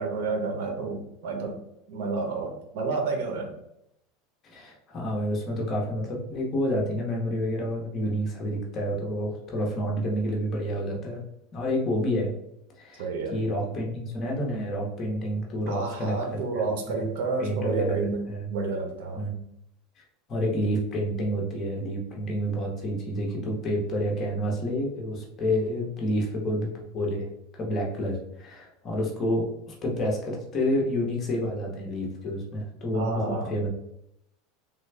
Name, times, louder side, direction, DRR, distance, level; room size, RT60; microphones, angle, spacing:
voice 1, 0.0-1.6 1.9-3.5 13.0-13.4 15.7-19.3 32.9-33.5, right 3 dB, 70° right, 3 dB, 0.9 m, -30 dB
voice 2, 4.4-11.2 11.5-12.4 12.8-16.2 16.9-17.1 17.4-18.0 18.3-18.5 19.1-19.3 20.0-20.1 20.3-33.7, equal, 30° left, -1 dB, 0.9 m, -29 dB
3.2 x 2.3 x 3.3 m, 0.79 s
supercardioid pair, 135°, 0 cm